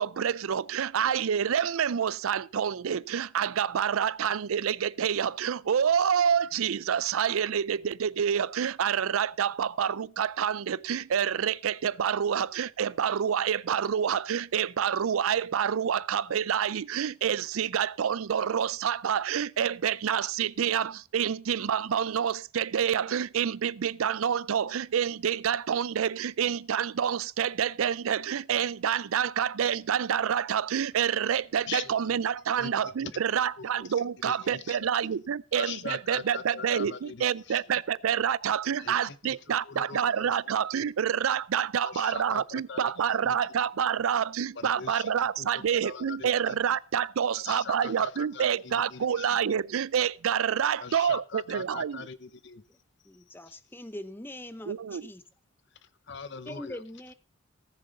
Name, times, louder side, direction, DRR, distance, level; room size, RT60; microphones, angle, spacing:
voice 1, 0.0-52.0 54.7-55.0, right 8 dB, 75° right, 0.4 m, -28 dB
voice 2, 31.7-32.2 32.6-33.2 33.6-34.9 35.5-37.8 38.8-40.4 40.8-40.9 41.8-43.4 44.5-46.8 47.3-49.4 50.8-52.6 53.3-53.6 55.7-56.8, left 6 dB, 55° left, 0.8 m, -42 dB
voice 3, 53.0-55.2 56.5-57.1, left 1 dB, 10° left, 0.6 m, -42 dB
18.0 x 6.8 x 3.9 m
head